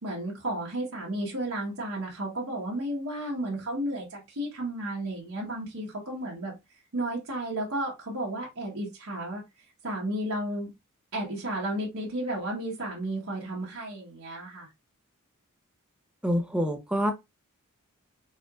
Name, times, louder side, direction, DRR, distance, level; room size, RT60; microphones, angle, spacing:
voice 1, 0.0-6.5 6.9-9.4 9.8-10.7 11.1-14.7, right 1 dB, 70° right, 1.2 m, -33 dB
voice 2, 16.2-17.1, equal, 5° right, 0.7 m, -26 dB
4.4 x 4.2 x 2.4 m
head